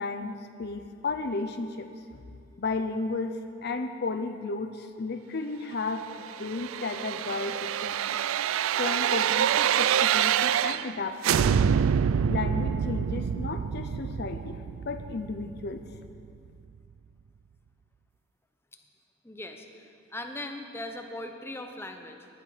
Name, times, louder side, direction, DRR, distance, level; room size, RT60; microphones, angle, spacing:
voice 1, 0.0-1.9 2.6-8.2 8.7-11.8 12.3-14.6 14.8-15.8, left 3 dB, 50° left, 8 dB, 0.7 m, -34 dB
sound 1, 6.2-11.0 11.2-16.1 16.5-16.6, right 8 dB, 85° right, 0.3 m, -26 dB
voice 2, 19.2-19.8 20.1-22.3, left 1 dB, 10° left, 4 dB, 0.9 m, -39 dB
18.5 x 11.0 x 5.1 m, 2.5 s
head